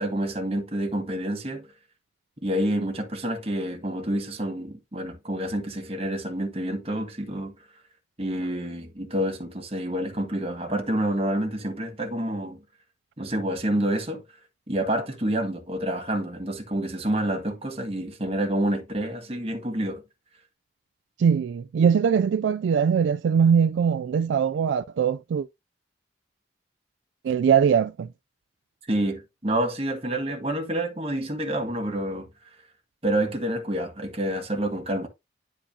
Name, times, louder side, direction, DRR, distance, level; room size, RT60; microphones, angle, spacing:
voice 1, 0.0-1.7 2.4-7.5 8.2-12.6 13.2-14.2 14.7-20.0 28.8-32.3 33.0-35.1, right 1 dB, 30° right, 1.6 m, -28 dB
voice 2, 21.2-25.5 27.2-28.1, right 7 dB, 85° right, 0.3 m, -21 dB
10.0 x 4.6 x 2.7 m
head